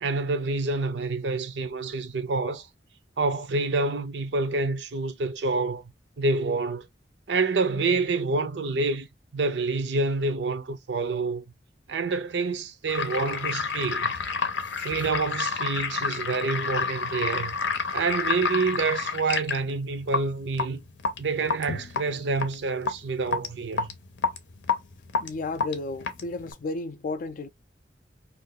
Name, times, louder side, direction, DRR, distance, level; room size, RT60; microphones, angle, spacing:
voice 1, 0.0-2.7 3.2-5.9 6.2-6.9 7.3-9.1 9.3-11.4 11.9-14.1 14.8-17.6 17.9-20.8 21.2-23.9, right 3 dB, 70° right, 0.5 m, -27 dB
sound 1, 12.9-26.5, left 5 dB, 90° left, 0.6 m, -29 dB
voice 2, 25.2-27.5, left 3 dB, 50° left, 0.4 m, -33 dB
2.6 x 2.3 x 3.6 m
head